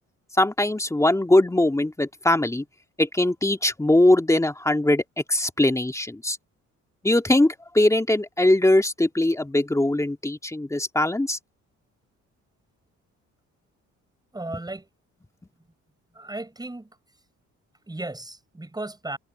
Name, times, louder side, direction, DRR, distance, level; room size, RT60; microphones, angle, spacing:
voice 1, 0.4-2.6 3.0-5.0 5.3-6.4 7.0-11.4, left 1 dB, 10° left, 2.1 m, -21 dB
voice 2, 14.3-14.9 16.1-17.0 17.8-19.2, right 2 dB, 15° right, 6.4 m, -35 dB
cardioid pair, 90°, 30 cm